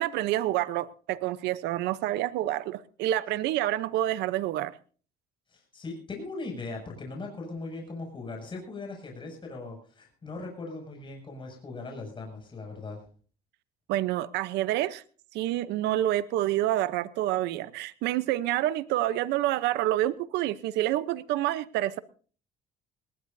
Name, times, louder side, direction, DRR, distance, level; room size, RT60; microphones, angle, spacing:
voice 1, 0.0-4.7 13.9-15.0 15.3-22.0, right 14 dB, 85° right, 16 dB, 0.8 m, -28 dB
voice 2, 5.5-13.0, left 3 dB, 30° left, 1 dB, 6.7 m, -39 dB
19.5 x 19.0 x 2.7 m, 0.40 s
cardioid pair, 110°, 17 cm